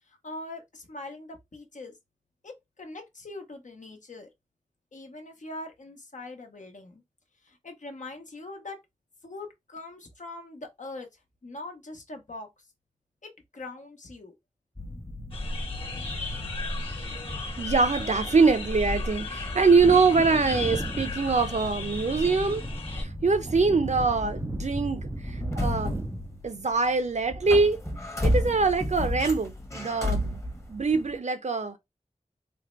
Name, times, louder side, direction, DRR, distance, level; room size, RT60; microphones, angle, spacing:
voice 1, 0.0-2.0 2.4-4.3 4.9-7.0 7.4-8.8 9.2-12.7 13.2-14.3, left 2 dB, 70° left, 0.9 m, -42 dB
sound 1, 14.8-26.9 27.2-31.2, left 1 dB, 20° left, 0.9 m, -34 dB
sound 2, 15.3-23.0, left 2 dB, 40° left, 1.2 m, -35 dB
voice 2, 17.6-22.6 22.9-26.0 26.4-27.8 28.2-30.4 30.7-31.8, right 4 dB, 65° right, 0.6 m, -24 dB
Wind / Thunder, 19.6-27.9 28.1-28.2, right 2 dB, 20° right, 0.3 m, -38 dB
3.5 x 2.1 x 3.0 m
wide cardioid pair, 50°, 13 cm